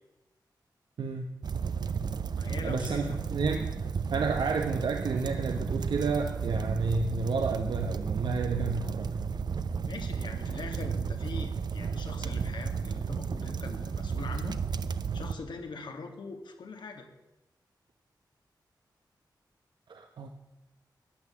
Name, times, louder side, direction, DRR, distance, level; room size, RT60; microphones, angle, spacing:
voice 1, 1.0-1.3 2.6-9.2 19.9-20.3, right 4 dB, 90° right, 4 dB, 1.0 m, -31 dB
sound 1, 1.4-15.3, right 6 dB, 65° right, 0.7 m, -33 dB
voice 2, 2.3-3.2 9.8-14.6 15.1-17.1, left 4 dB, 80° left, 4 dB, 2.0 m, -42 dB
14.5 x 9.7 x 7.1 m, 0.99 s
wide cardioid pair, 145°, 8 cm